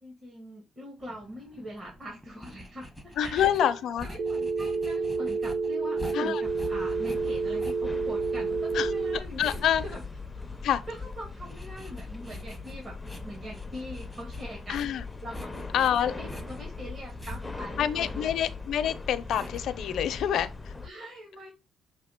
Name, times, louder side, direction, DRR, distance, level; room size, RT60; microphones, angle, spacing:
voice 1, 0.0-10.0 10.9-13.0 13.2-14.9 15.2-18.3 20.8-21.5, equal, 35° right, 2.5 m, -42 dB
sound 1, 1.0-19.6, left 1 dB, 10° right, 1.2 m, -47 dB
voice 2, 3.2-4.0 6.1-6.4 8.7-8.9 9.4-9.8 10.6-10.8 14.7-15.0 15.7-16.1 17.8-20.7, left 10 dB, 75° left, 0.6 m, -27 dB
Telephone, 4.2-9.2, right 4 dB, 60° right, 0.5 m, -29 dB
sound 2, 6.4-20.9, left 3 dB, 15° left, 0.7 m, -40 dB
6.7 x 2.9 x 5.1 m
cardioid pair, 90°, 0 cm